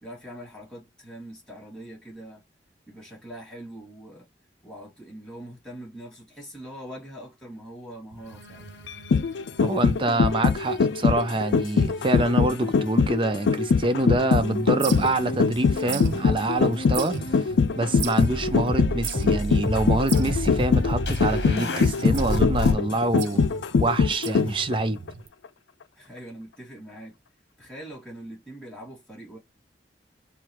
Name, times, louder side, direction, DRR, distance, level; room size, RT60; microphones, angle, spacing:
voice 1, 0.0-2.4 2.9-4.3 4.6-8.7 26.0-27.2 27.6-29.4, right 1 dB, 5° left, 2.4 m, -42 dB
sound 1, 8.1-13.3 13.6-25.3, right 5 dB, 85° right, 0.5 m, -39 dB
sound 2, 8.3-9.8 10.2-11.5 12.3-22.7, left 1 dB, 65° left, 1.0 m, -32 dB
sound 3, 8.9-24.7 25.1-25.2, left 5 dB, 85° left, 0.4 m, -22 dB
voice 2, 9.6-23.5 23.8-25.0, right 2 dB, 30° right, 0.5 m, -26 dB
4.7 x 2.3 x 3.0 m
head